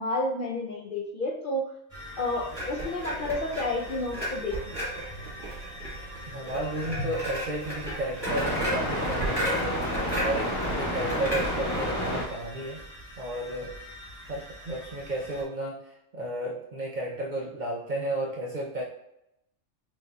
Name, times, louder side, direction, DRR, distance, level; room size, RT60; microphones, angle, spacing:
voice 1, 0.0-1.6 2.2-4.6, left 2 dB, 60° left, -3 dB, 0.5 m, -30 dB
sound 1, 1.9-15.4, equal, 15° left, 1.3 m, -34 dB
sound 2, 2.5-11.9, equal, 20° right, 1.4 m, -35 dB
voice 2, 6.3-9.8 10.2-12.8 13.2-13.8 14.3-18.8, right 1 dB, 50° right, -3 dB, 0.6 m, -33 dB
6.2 x 2.6 x 2.3 m, 0.82 s
omnidirectional pair, 1.3 m